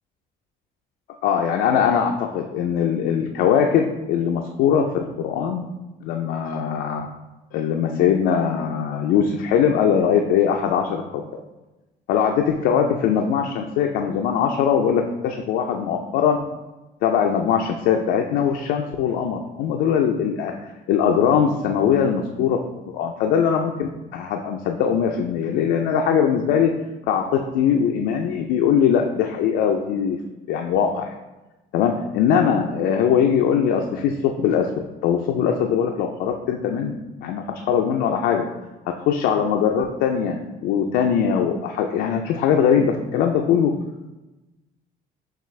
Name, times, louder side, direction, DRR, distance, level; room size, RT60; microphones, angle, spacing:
voice 1, 1.2-4.9 5.2-5.6 6.0-7.1 7.5-11.2 12.1-16.5 17.0-20.5 20.9-22.6 22.9-26.7 27.1-30.2 30.5-31.1 31.7-34.7 35.0-36.9 37.2-38.4 39.0-43.7, left 7 dB, 85° left, 2 dB, 0.4 m, -21 dB
5.8 x 2.4 x 3.1 m, 1.1 s
cardioid pair, 110°, 17 cm